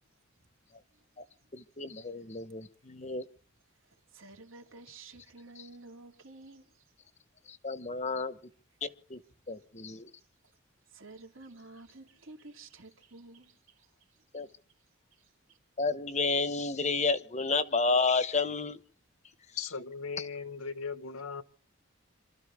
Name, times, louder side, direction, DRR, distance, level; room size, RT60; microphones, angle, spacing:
voice 1, 1.5-3.2 7.5-8.4 8.8-9.2 9.5-10.1 14.3-14.5 15.8-18.8, left 4 dB, 30° left, 1.0 m, -31 dB
voice 2, 4.1-6.9 9.6-9.7 10.9-14.5 15.1-15.6, right 3 dB, 65° right, 2.9 m, -52 dB
voice 3, 19.6-21.4, left 5 dB, 85° left, 1.4 m, -38 dB
27.0 x 13.5 x 3.5 m
head